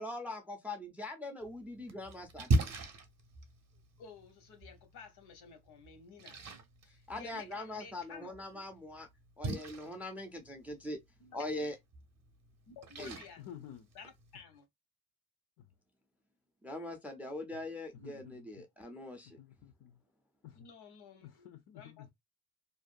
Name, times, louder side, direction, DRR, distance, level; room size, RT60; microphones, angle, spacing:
voice 1, 0.0-2.7 7.1-9.1 9.4-11.0 11.3-11.8 13.0-13.2 16.6-19.4, left 2 dB, 5° right, 0.3 m, -42 dB
Splash splatter, 1.4-14.4, right 2 dB, 45° right, 0.6 m, -40 dB
voice 2, 4.0-8.6 11.2-11.5 12.7-13.4 13.9-14.7 20.5-22.1, left 5 dB, 80° left, 1.0 m, -53 dB
voice 3, 13.4-13.9 15.6-15.7 17.9-18.7 19.4-20.0 20.4-20.7 21.2-22.1, left 10 dB, 65° left, 0.5 m, -51 dB
2.5 x 2.2 x 2.4 m
cardioid pair, 160°, 38 cm